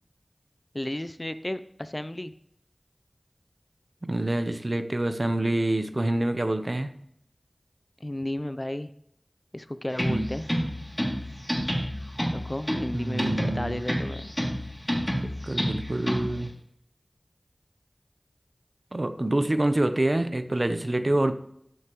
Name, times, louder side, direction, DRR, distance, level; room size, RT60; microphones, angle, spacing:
voice 1, 0.7-2.3 8.0-8.9 9.5-10.5 12.3-14.3, left 1 dB, 30° left, 12 dB, 0.4 m, -33 dB
voice 2, 4.0-6.9 10.0-10.3 12.9-13.8 15.2-16.5 18.9-21.3, right 1 dB, 45° right, 10 dB, 0.7 m, -26 dB
sound 1, 9.9-16.5, equal, 10° left, 2.7 m, -30 dB
13.5 x 6.6 x 3.1 m, 0.73 s
wide cardioid pair, 45°, 0 cm